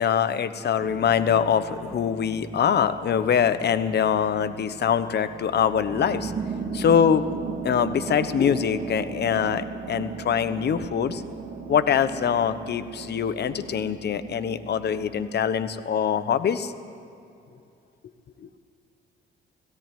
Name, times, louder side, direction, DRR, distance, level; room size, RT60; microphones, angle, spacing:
voice 1, 0.0-6.3 6.7-7.2 7.6-11.2 11.7-16.7, left 8 dB, 55° left, 12 dB, 1.1 m, -23 dB
sound 1, 0.8-15.2, right 5 dB, 35° right, 3.3 m, -37 dB
17.5 x 17.0 x 9.2 m, 2.6 s
cardioid pair, 90°, 20 cm